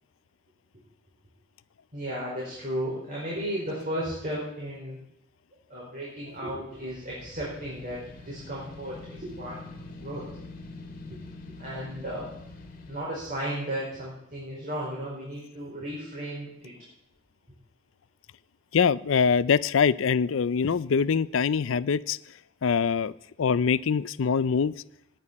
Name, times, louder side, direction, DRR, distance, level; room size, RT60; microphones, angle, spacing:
voice 1, 1.9-5.0 5.7-8.0 8.2-9.6 10.0-10.2 11.6-12.3 12.9-16.7, equal, 45° right, -5 dB, 5.0 m, -34 dB
sound 1, 6.7-13.1, left 2 dB, 45° left, 2.1 m, -44 dB
voice 2, 18.7-22.2 22.6-23.1 23.4-24.7, left 6 dB, 80° left, 18 dB, 0.4 m, -23 dB
18.0 x 10.5 x 4.2 m, 0.81 s
head